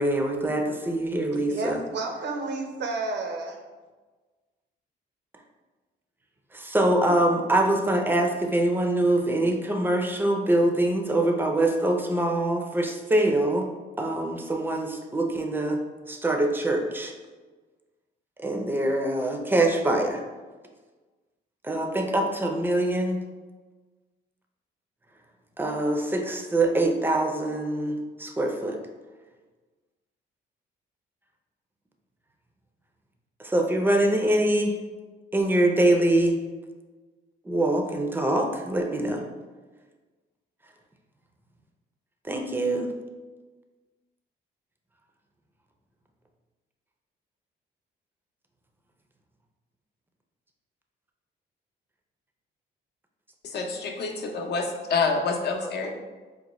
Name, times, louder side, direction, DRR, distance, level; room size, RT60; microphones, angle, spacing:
voice 1, 0.0-1.8 6.5-13.7 14.0-15.8 16.1-17.1 18.4-20.2 21.6-23.2 25.6-28.8 33.4-34.8 35.3-36.4 37.4-39.2 42.2-42.9, right 1 dB, 10° right, 3 dB, 0.5 m, -24 dB
voice 2, 1.5-3.6, right 3 dB, 60° right, 4 dB, 0.6 m, -31 dB
voice 3, 53.4-55.9, left 4 dB, 55° left, 2 dB, 0.7 m, -27 dB
4.7 x 2.2 x 3.0 m, 1.3 s
cardioid pair, 90°, 20 cm